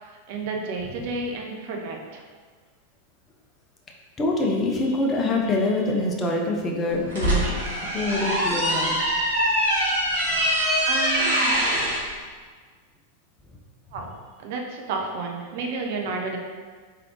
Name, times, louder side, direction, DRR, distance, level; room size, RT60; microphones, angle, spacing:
voice 1, 0.0-2.2 10.9-11.7 13.9-16.4, right 3 dB, 50° right, 1 dB, 0.5 m, -31 dB
voice 2, 4.2-7.4 7.8-9.0 10.3-10.4, left 2 dB, 20° left, -1 dB, 0.6 m, -25 dB
sound 1, 6.9-12.0, equal, 65° right, 1.4 m, -23 dB
3.7 x 3.3 x 2.9 m, 1.5 s
figure-of-eight pair, 90°, 0 cm